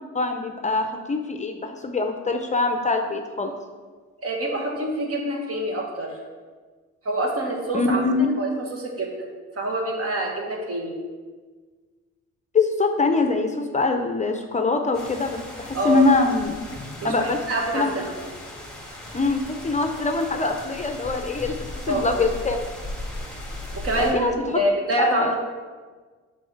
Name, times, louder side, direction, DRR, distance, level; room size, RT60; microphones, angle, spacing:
voice 1, 0.1-3.5 7.7-8.3 12.5-16.5 17.0-17.4 17.7-17.9 19.1-22.6 24.0-24.6 25.0-25.3, left 3 dB, 25° left, 5 dB, 0.6 m, -23 dB
voice 2, 4.2-6.1 7.0-9.2 9.6-10.9 15.7-16.1 17.0-18.0 21.9-22.1 23.7-24.3 24.5-25.3, right 1 dB, 50° right, 0 dB, 1.6 m, -26 dB
sound 1, 14.9-24.1, left 1 dB, 5° left, 1.7 m, -37 dB
6.2 x 4.0 x 5.6 m, 1.4 s
cardioid pair, 90°, 30 cm